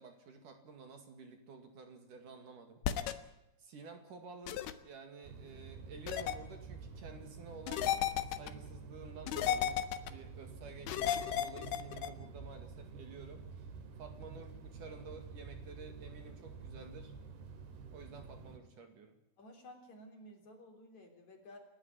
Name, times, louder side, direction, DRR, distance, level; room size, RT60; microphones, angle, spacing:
voice 1, 0.0-2.8 3.6-7.9 8.3-9.8 10.1-13.7 14.0-17.1 17.9-19.2, right 4 dB, 55° right, 6 dB, 3.5 m, -52 dB
sound 1, 2.8-3.1 4.5-4.7 6.1-6.3 7.7-8.5 9.3-10.1 10.9-12.1, left 10 dB, 75° left, 3.1 m, -33 dB
sound 2, 5.2-18.6, right 4 dB, 75° right, 4.3 m, -49 dB
voice 2, 19.4-21.6, left 1 dB, 45° left, 4 dB, 4.5 m, -54 dB
29.5 x 12.0 x 9.6 m, 0.92 s
omnidirectional pair, 4.7 m